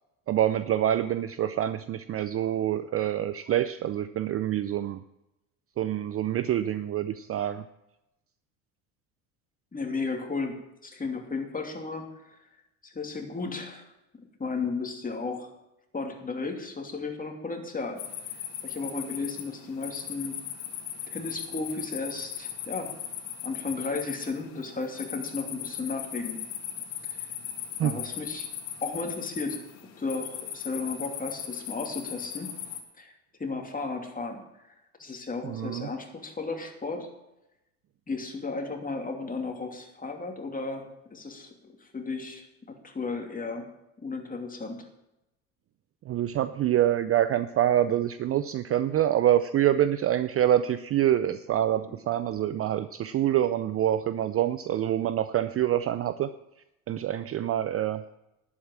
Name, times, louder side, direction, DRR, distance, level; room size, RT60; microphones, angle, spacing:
voice 1, 0.3-5.0 5.8-7.6 27.8-28.0 35.4-35.9 46.1-56.3 56.9-58.0, right 11 dB, 35° right, 14 dB, 0.5 m, -26 dB
voice 2, 9.7-12.4 12.8-13.8 14.2-15.5 15.9-18.0 18.6-20.4 21.1-22.9 23.4-26.4 27.0-27.3 27.8-28.5 28.8-29.6 30.0-32.6 33.0-33.1 33.4-37.1 38.1-40.9 41.1-43.6 44.0-44.8, left 3 dB, 20° left, 3 dB, 2.8 m, -34 dB
sound 1, 18.0-32.8, left 10 dB, 65° left, 2.5 m, -38 dB
11.5 x 8.6 x 7.3 m, 0.90 s
hypercardioid pair, 75°, 43 cm